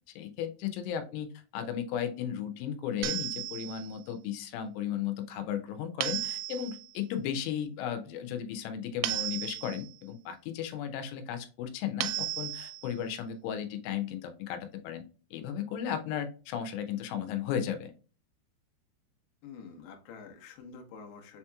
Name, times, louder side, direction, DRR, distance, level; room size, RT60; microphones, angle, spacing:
voice 1, 0.2-15.0 15.3-17.9, left 9 dB, 90° left, 7 dB, 3.2 m, -35 dB
sound 1, 3.0-4.0 6.0-6.9 9.0-9.9 12.0-12.9, right 14 dB, 85° right, 2.9 m, -35 dB
voice 2, 19.4-21.4, left 5 dB, 75° left, 2 dB, 2.7 m, -47 dB
6.8 x 2.9 x 2.2 m, 0.35 s
omnidirectional pair, 5.4 m